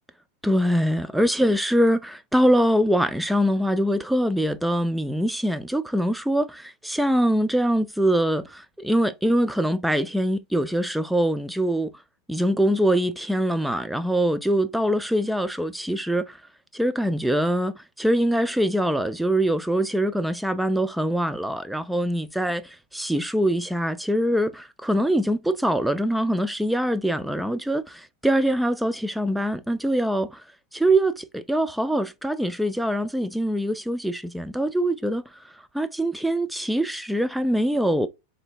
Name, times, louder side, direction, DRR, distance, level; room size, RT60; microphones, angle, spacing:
voice 1, 0.4-11.9 12.3-16.4 16.7-22.6 22.9-30.4 30.7-35.2 35.7-38.1, right 1 dB, 5° right, 0.4 m, -23 dB
3.9 x 3.3 x 2.4 m
hypercardioid pair, 95°, 0 cm